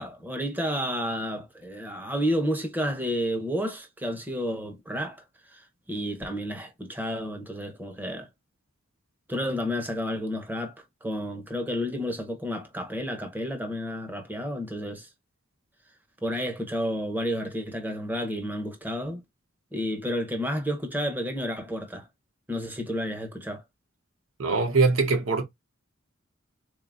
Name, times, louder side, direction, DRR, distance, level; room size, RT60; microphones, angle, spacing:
voice 1, 0.0-8.3 9.3-10.7 11.0-15.1 16.2-19.2 19.7-22.1 22.5-23.6, equal, 10° right, 0.9 m, -31 dB
voice 2, 24.4-25.4, right 3 dB, 80° right, 0.9 m, -22 dB
3.9 x 3.7 x 2.5 m
head